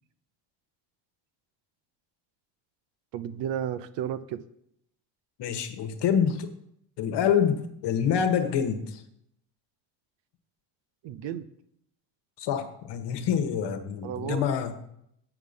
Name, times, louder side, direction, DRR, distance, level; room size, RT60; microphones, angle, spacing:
voice 1, 3.1-4.4 11.0-11.5 14.0-14.5, right 9 dB, 70° right, 13 dB, 0.8 m, -33 dB
voice 2, 5.4-6.5 7.0-8.9 12.4-14.7, left 8 dB, 65° left, 7 dB, 1.2 m, -26 dB
7.9 x 5.5 x 6.5 m, 0.74 s
cardioid pair, 120°, 45 cm